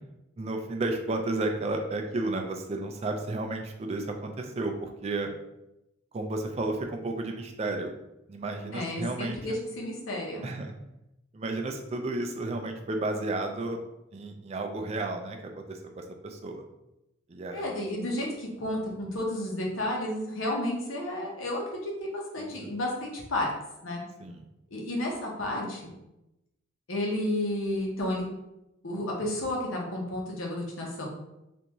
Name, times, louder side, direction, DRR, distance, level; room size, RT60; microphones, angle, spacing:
voice 1, 0.4-5.3 6.1-7.9 8.3-9.4 10.4-10.8 11.3-13.8 14.1-16.6 17.3-17.8 22.4-22.7 24.2-24.5, right 2 dB, 30° right, 3 dB, 0.3 m, -32 dB
voice 2, 8.7-10.4 17.5-23.5 23.8-24.0 24.7-25.9 26.9-28.3 28.8-31.1, left 1 dB, 85° left, -1 dB, 0.9 m, -32 dB
3.4 x 2.6 x 3.0 m, 0.91 s
head